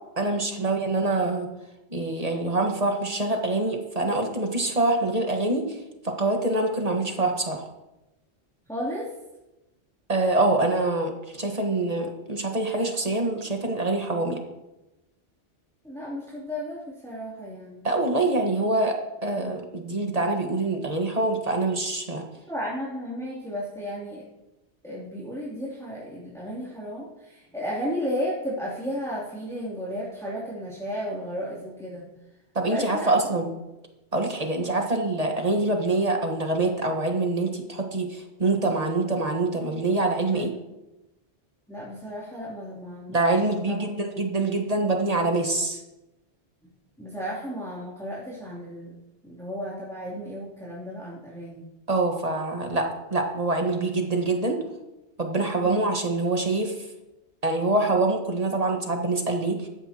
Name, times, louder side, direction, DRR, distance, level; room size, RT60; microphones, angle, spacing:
voice 1, 0.2-1.5 1.9-5.8 6.0-7.6 10.1-14.4 17.8-22.2 32.5-33.5 34.1-40.5 43.1-45.8 51.9-54.6 55.2-56.7 57.4-59.7, right 2 dB, 35° right, 3 dB, 1.5 m, -25 dB
voice 2, 8.7-9.1 15.8-17.9 22.5-24.2 24.8-32.0 32.7-33.5 40.3-40.5 41.7-43.2 43.7-43.9 47.0-48.9 49.2-51.6 55.6-55.9, equal, ahead, -8 dB, 2.9 m, -34 dB
15.0 x 12.5 x 2.9 m, 0.99 s
omnidirectional pair, 1.2 m